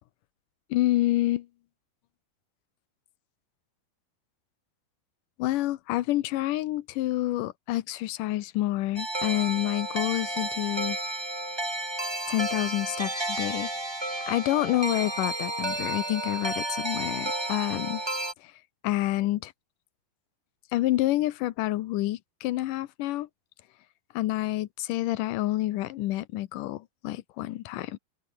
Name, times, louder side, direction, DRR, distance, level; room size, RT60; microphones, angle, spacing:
voice 1, 0.7-1.5 5.4-11.0 12.3-13.7 14.3-18.0 18.4-18.5 18.8-19.5 20.7-23.3 24.1-28.0, left 16 dB, 75° left, 2.1 m, -28 dB
sound 1, 8.9-18.3, right 2 dB, 20° right, 0.7 m, -32 dB
open air
omnidirectional pair, 4.7 m